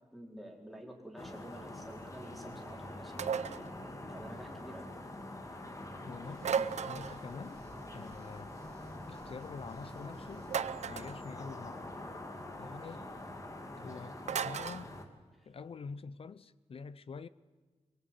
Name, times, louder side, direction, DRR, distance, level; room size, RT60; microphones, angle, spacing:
voice 1, 0.1-3.3 4.1-4.9 15.3-15.5, right 1 dB, ahead, 4.5 m, -49 dB
sound 1, 1.2-15.0, left 1 dB, 25° left, 2.5 m, -45 dB
sound 2, 3.2-3.7 6.4-7.2 10.5-11.2 14.3-14.8, right 7 dB, 80° right, 0.7 m, -34 dB
voice 2, 6.0-7.6 7.9-8.5 9.1-10.5 10.9-11.9 12.6-13.0 13.8-14.9 15.5-17.3, left 5 dB, 55° left, 0.7 m, -46 dB
sound 3, 6.2-10.6, right 2 dB, 30° right, 4.6 m, -61 dB
23.0 x 21.5 x 9.1 m
wide cardioid pair, 135°, 12 cm